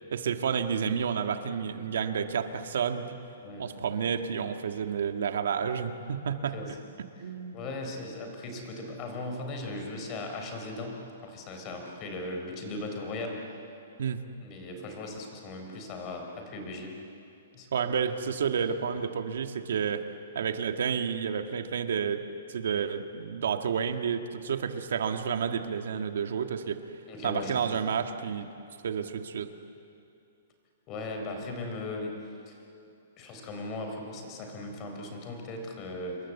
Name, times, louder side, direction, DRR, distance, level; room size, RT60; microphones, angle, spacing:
voice 1, 0.1-3.2 3.6-6.5 7.2-7.6 14.0-14.2 17.7-20.0 20.4-22.2 22.5-26.8 27.2-28.5 28.8-29.5, right 7 dB, 70° right, 7 dB, 1.7 m, -30 dB
voice 2, 6.3-6.8 7.5-13.4 14.4-16.9 17.5-17.9 27.1-28.0 30.9-32.1 32.5-32.6 33.2-36.2, left 2 dB, 25° left, 3 dB, 4.1 m, -38 dB
28.0 x 22.5 x 8.3 m, 2.7 s
hypercardioid pair, 165°, 0 cm